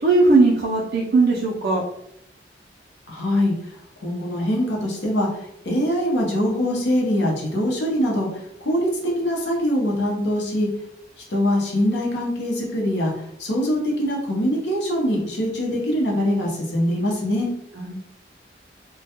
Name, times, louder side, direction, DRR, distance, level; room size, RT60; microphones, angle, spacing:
voice 1, 0.0-1.8 17.8-17.9, right 3 dB, 65° right, -5 dB, 0.4 m, -18 dB
voice 2, 3.1-3.6 4.0-10.7 11.3-17.5, equal, 80° left, -2 dB, 0.7 m, -23 dB
2.2 x 2.2 x 2.8 m, 0.77 s
head